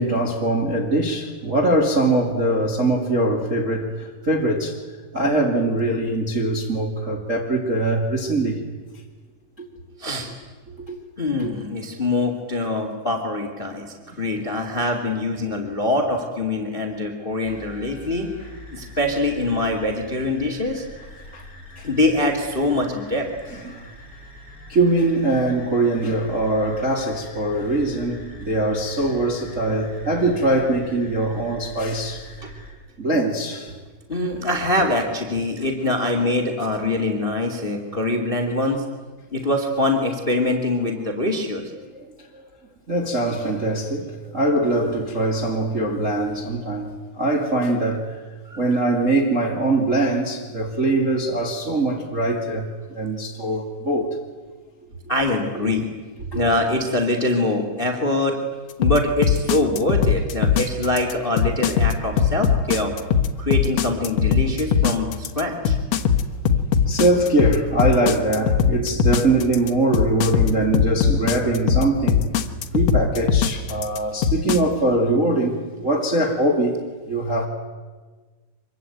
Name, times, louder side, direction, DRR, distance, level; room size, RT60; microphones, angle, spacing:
voice 1, 0.0-4.8 5.1-8.6 9.6-9.7 10.7-11.0 11.4-11.5 21.3-21.4 21.8-21.9 23.6-23.9 24.7-32.3 33.0-33.7 41.9-42.0 42.3-42.5 42.9-48.2 48.6-54.2 56.3-56.4 66.9-72.3 72.7-77.5, right 2 dB, 25° right, 2.1 m, -22 dB
voice 2, 11.2-18.3 18.7-20.8 21.8-23.3 32.4-32.5 34.1-38.8 39.3-41.7 48.5-48.6 55.1-55.8 56.3-58.4 58.8-62.9 63.4-65.8, left 2 dB, 20° left, 1.8 m, -23 dB
sound 1, 17.4-32.7, left 1 dB, 5° right, 6.0 m, -43 dB
sound 2, 58.8-74.6, left 8 dB, 70° left, 1.6 m, -19 dB
25.5 x 23.0 x 9.3 m
omnidirectional pair, 4.9 m